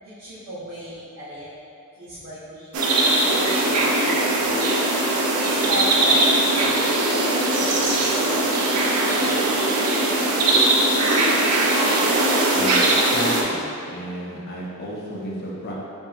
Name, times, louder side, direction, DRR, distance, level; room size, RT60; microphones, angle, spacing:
voice 1, 0.0-1.5 2.0-2.9 3.3-4.9 5.4-6.8 7.2-8.7 9.0-9.6 10.0-10.1 10.4-10.6, equal, 65° right, -13 dB, 0.9 m, -36 dB
sound 1, 2.7-13.4, right 2 dB, 85° right, 0.5 m, -20 dB
voice 2, 13.1-15.7, equal, 45° left, -4 dB, 0.7 m, -32 dB
5.5 x 2.6 x 2.4 m, 2.5 s
head